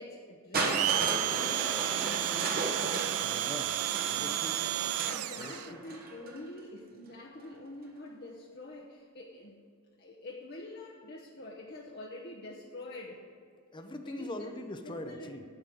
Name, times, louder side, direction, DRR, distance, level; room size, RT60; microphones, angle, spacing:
voice 1, 0.0-2.6 5.1-9.6 10.0-13.3 14.0-15.4, left 2 dB, 45° left, -2 dB, 1.0 m, -46 dB
Crushing, 0.5-6.4 7.4-7.5, right 2 dB, 45° right, 1.2 m, -36 dB
Domestic sounds home sounds, 0.6-5.7, right 13 dB, 85° right, 0.4 m, -32 dB
voice 2, 3.2-4.6 5.4-5.8 13.7-15.4, left 1 dB, 20° left, 6 dB, 0.7 m, -42 dB
11.5 x 5.3 x 7.6 m, 2.3 s
head